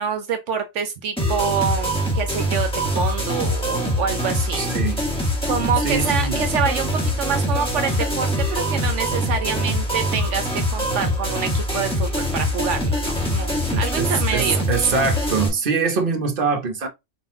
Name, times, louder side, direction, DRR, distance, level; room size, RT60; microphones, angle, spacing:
voice 1, 0.0-4.6 5.5-14.6, right 7 dB, 75° right, 1.1 m, -26 dB
sound 1, 1.2-15.5, equal, 5° left, 1.8 m, -23 dB
voice 2, 4.6-5.0 5.8-6.4 13.7-16.9, right 5 dB, 50° right, 1.2 m, -23 dB
4.6 x 3.9 x 2.7 m
omnidirectional pair, 1.2 m